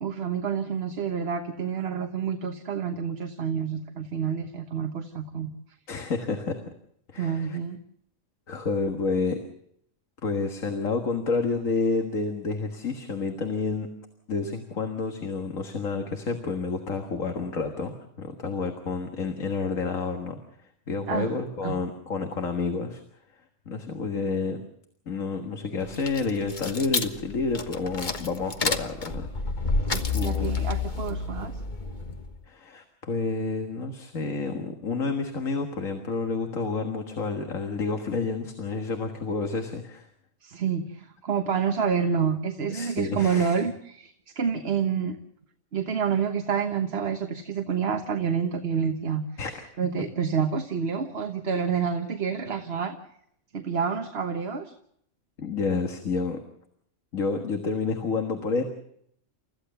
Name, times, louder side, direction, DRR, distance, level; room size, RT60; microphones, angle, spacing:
voice 1, 0.0-5.5 7.1-7.8 21.1-21.3 21.6-21.7 29.9-31.5 40.4-45.2 45.7-49.3 49.8-53.0 53.5-54.7, right 6 dB, 50° right, 6 dB, 1.4 m, -28 dB
voice 2, 5.9-6.6 7.1-7.6 8.5-9.4 10.2-13.9 14.3-20.4 20.9-23.0 23.7-24.6 25.1-29.3 30.1-30.5 32.5-40.1 42.7-43.6 49.4-49.6 55.4-56.4 57.1-58.6, left 4 dB, 75° left, 5 dB, 2.1 m, -29 dB
sound 1, 25.8-32.4, left 4 dB, 35° left, 1.5 m, -30 dB
29.5 x 15.0 x 6.8 m, 0.71 s
omnidirectional pair, 1.4 m